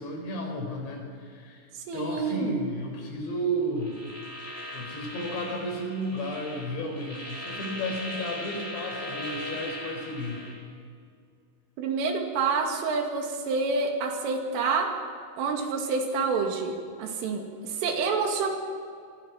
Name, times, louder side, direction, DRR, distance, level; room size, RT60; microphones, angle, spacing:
voice 1, 0.0-1.7 1.9-10.4 17.1-17.2, equal, 65° left, 2 dB, 6.5 m, -33 dB
voice 2, 1.9-2.6 11.8-14.9 15.4-16.7 17.0-18.5, right 4 dB, 85° right, 3 dB, 4.9 m, -28 dB
sound 1, 3.8-10.6, left 1 dB, 5° left, 5.7 m, -39 dB
26.5 x 24.5 x 5.9 m, 2.2 s
omnidirectional pair, 5.6 m